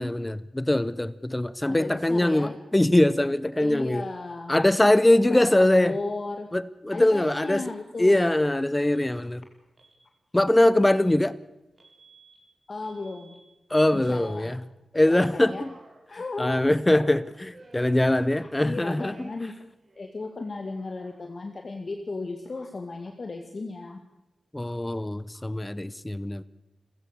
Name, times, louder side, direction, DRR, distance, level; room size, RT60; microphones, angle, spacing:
voice 1, 0.0-4.0 4.5-6.0 6.5-7.6 8.0-9.4 10.3-11.4 13.7-14.6 14.9-15.7 16.4-19.3 24.5-26.4, left 1 dB, 15° left, 0.7 m, -22 dB
voice 2, 1.6-2.5 3.6-4.5 5.3-6.5 6.9-8.2 12.7-13.4 13.9-14.5 15.0-15.6 16.1-16.6 16.9-17.1 18.4-19.5 20.0-24.0 25.3-25.4, left 3 dB, 40° left, 2.0 m, -35 dB
Alarm, 8.1-8.3 8.9-9.1 9.7-10.0 10.8-11.1 11.8-12.4 12.8-13.4 13.8-14.4 14.9-16.5 17.5-18.7 19.0-19.6 19.8-21.6, right 2 dB, 40° right, 4.7 m, -54 dB
29.5 x 15.5 x 6.8 m
wide cardioid pair, 110°, 0 cm